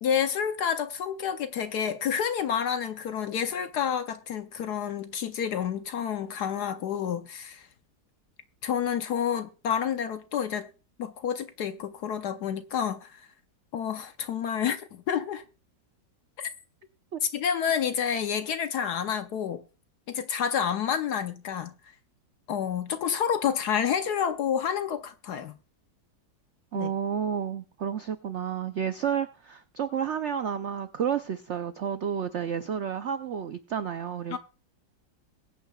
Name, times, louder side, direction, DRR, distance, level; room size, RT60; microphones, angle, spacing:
voice 1, 0.0-7.7 8.6-10.7 11.0-13.2 13.7-15.4 16.4-16.5 17.3-19.6 20.1-21.7 22.5-25.5 26.7-26.9 34.3-34.4, left 8 dB, 65° left, 1.2 m, -29 dB
voice 2, 26.7-34.4, right 8 dB, 80° right, 0.6 m, -31 dB
21.5 x 9.0 x 2.3 m
omnidirectional pair, 2.0 m